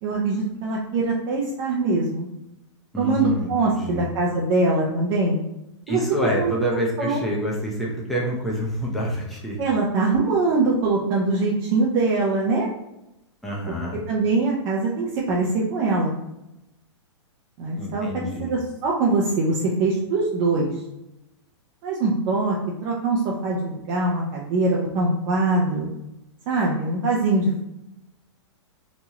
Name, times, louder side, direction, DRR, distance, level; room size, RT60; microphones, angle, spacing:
voice 1, 0.0-2.3 3.0-5.5 5.9-6.0 6.4-6.5 7.0-7.2 9.6-12.7 13.7-13.8 14.1-16.1 17.6-20.8 21.8-25.9 26.5-27.6, right 3 dB, 40° right, -4 dB, 0.6 m, -23 dB
voice 2, 2.9-4.0 5.9-9.6 13.4-14.0 17.8-18.5, equal, ahead, -5 dB, 0.6 m, -27 dB
3.0 x 2.2 x 2.8 m, 0.90 s
hypercardioid pair, 120°, 16 cm